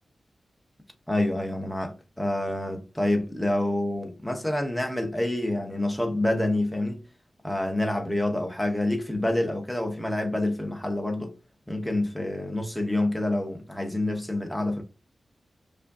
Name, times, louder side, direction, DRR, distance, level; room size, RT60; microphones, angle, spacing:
voice 1, 1.1-7.0 7.4-11.3 11.7-14.8, left 1 dB, ahead, 0.6 m, -27 dB
4.9 x 2.5 x 2.3 m
wide cardioid pair, 135°, 0 cm